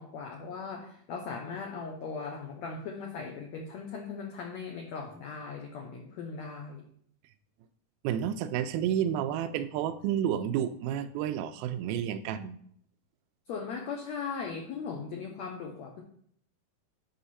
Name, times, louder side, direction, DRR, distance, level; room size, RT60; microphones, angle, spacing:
voice 1, 0.0-6.8 13.5-16.0, left 5 dB, 85° left, 1 dB, 1.5 m, -38 dB
voice 2, 8.0-12.6, right 9 dB, 85° right, 10 dB, 2.4 m, -30 dB
7.9 x 5.5 x 4.2 m, 0.64 s
omnidirectional pair, 4.3 m